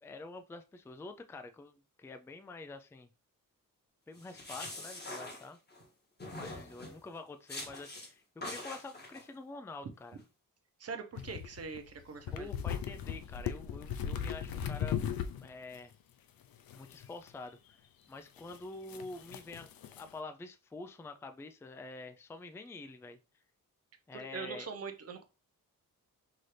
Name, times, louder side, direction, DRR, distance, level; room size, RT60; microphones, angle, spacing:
voice 1, 0.0-3.1 4.1-5.6 6.2-10.2 12.3-15.9 16.7-19.7 20.0-23.2 24.1-24.7, left 3 dB, 10° left, 0.3 m, -47 dB
sound 1, 4.2-5.8 6.2-7.0 7.5-8.1 8.4-9.2, left 2 dB, 30° left, 1.5 m, -44 dB
voice 2, 10.8-12.5 24.1-25.2, right 5 dB, 45° right, 0.8 m, -42 dB
sound 2, 11.2-15.5 15.7-15.8 16.7-17.3 18.4-18.6 18.9-20.1, left 8 dB, 80° left, 0.5 m, -37 dB
5.8 x 2.6 x 3.2 m
wide cardioid pair, 135°, 35 cm